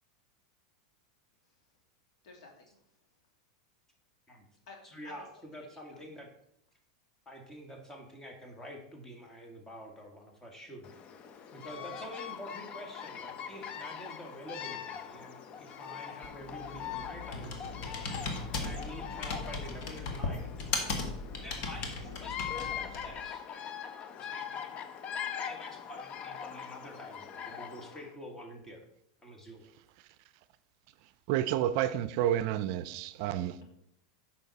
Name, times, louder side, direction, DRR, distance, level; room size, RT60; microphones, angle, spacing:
voice 1, 2.2-3.0 4.7-4.8 5.0-5.2 5.5-6.0 11.6-11.7, left 4 dB, 75° left, 2.8 m, -53 dB
voice 2, 4.8-6.3 7.3-11.0 11.5-18.2 18.5-20.7 21.4-23.7 24.1-24.7 25.4-28.8 29.2-29.7, equal, 15° left, 1.8 m, -47 dB
Bird vocalization bird call bird song, 10.8-28.1, left 8 dB, 35° left, 0.7 m, -42 dB
Computer keyboard, 16.2-23.2, left 3 dB, 55° left, 1.7 m, -37 dB
voice 3, 31.3-33.6, right 11 dB, 55° right, 0.5 m, -30 dB
9.1 x 6.0 x 4.1 m
supercardioid pair, 125°, 3 cm